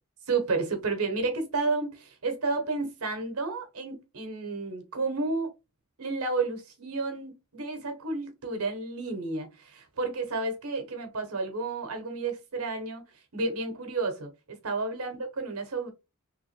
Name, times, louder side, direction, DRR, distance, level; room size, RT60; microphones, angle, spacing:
voice 1, 0.3-5.5 6.0-13.0 13.3-15.9, right 3 dB, 80° right, 1.1 m, -31 dB
3.4 x 2.8 x 3.2 m
head